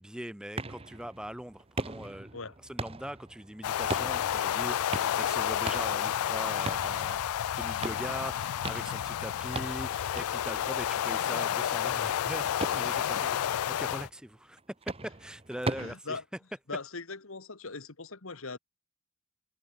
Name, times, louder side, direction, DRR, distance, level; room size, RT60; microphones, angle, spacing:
voice 1, 0.0-2.3 2.6-7.2 7.5-14.6 14.8-16.2, equal, 5° right, 0.6 m, -41 dB
sound 1, 0.6-15.9, right 2 dB, 25° right, 1.0 m, -41 dB
sound 2, 3.6-14.1, left 10 dB, 90° left, 0.4 m, -30 dB
voice 2, 15.7-16.2 16.7-18.6, left 4 dB, 70° left, 1.7 m, -40 dB
head